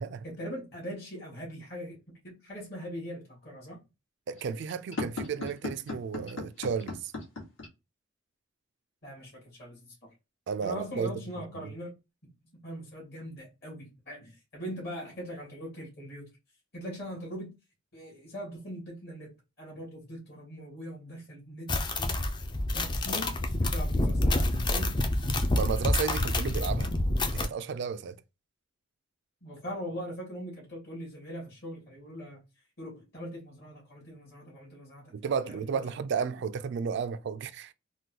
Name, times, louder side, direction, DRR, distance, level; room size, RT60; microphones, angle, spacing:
voice 1, 0.2-2.0 2.2-3.8 9.0-10.1 10.6-11.9 12.5-16.3 16.7-17.5 17.9-22.3 22.7-25.0 29.4-32.4 32.8-35.1 35.4-35.9, equal, 50° left, 1.5 m, -41 dB
sound 1, 4.3-7.7, left 3 dB, 70° left, 1.5 m, -36 dB
voice 2, 4.3-7.1 10.5-11.1 11.6-11.7 25.5-26.9 27.3-28.2 35.1-37.7, right 6 dB, 55° right, 0.3 m, -33 dB
sound 2, 21.7-27.5, left 1 dB, 20° left, 0.4 m, -27 dB
3.7 x 2.2 x 2.8 m
head